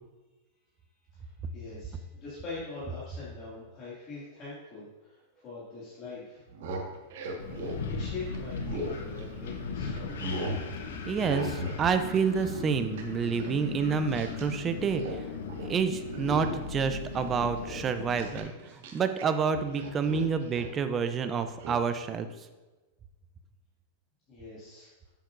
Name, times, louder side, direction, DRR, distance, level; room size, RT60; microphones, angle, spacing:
voice 1, 1.5-6.4 7.9-10.3 24.3-24.9, left 3 dB, 30° left, -9 dB, 2.2 m, -43 dB
sound 1, 6.4-9.6 10.0-10.6 11.2-11.8 12.1-14.5 14.8-15.2 15.5-15.7 16.1-16.7 17.1-19.2 19.5-20.8 21.6-21.8, right 1 dB, 65° right, 1.4 m, -38 dB
Wind, 7.4-18.4, left 5 dB, 90° left, 1.1 m, -38 dB
voice 2, 11.1-15.0 15.7-18.5 18.9-22.3, right 6 dB, 20° right, 9 dB, 0.5 m, -28 dB
10.0 x 7.5 x 2.6 m, 1.2 s
supercardioid pair, 155°, 0 cm